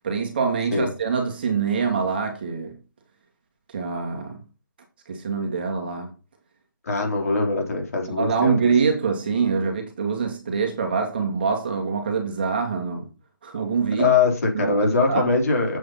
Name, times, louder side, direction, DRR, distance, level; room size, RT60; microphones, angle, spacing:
voice 1, 0.0-2.8 3.7-4.4 5.1-6.1 8.1-13.1 13.4-14.1 14.5-15.3, right 5 dB, 30° right, 1.9 m, -25 dB
voice 2, 6.8-8.5 14.0-15.8, left 4 dB, 45° left, 3.8 m, -22 dB
7.9 x 6.4 x 5.7 m
hypercardioid pair, 175°, 11 cm